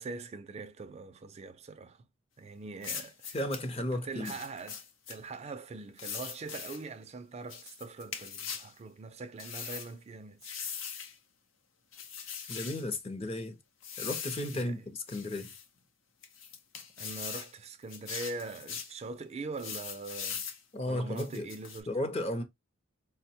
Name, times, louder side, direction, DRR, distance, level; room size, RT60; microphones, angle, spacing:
voice 1, 0.0-2.0 2.4-3.4 3.8-10.4 14.5-14.9 17.0-20.5 20.8-21.9, right 3 dB, 35° right, 0.4 m, -42 dB
sound 1, 2.8-3.7 4.2-5.2 6.0-6.8 7.5-8.7 9.4-9.9 10.4-11.1 11.9-12.8 13.8-14.6 15.1-15.7 16.2-17.5 17.9-18.9 19.6-20.6 21.2-21.8, left 7 dB, 75° left, 0.7 m, -41 dB
voice 2, 3.3-4.3 12.5-13.6 14.0-15.5 20.7-21.5 21.9-22.4, left 1 dB, 30° left, 0.6 m, -34 dB
4.6 x 2.1 x 2.7 m
head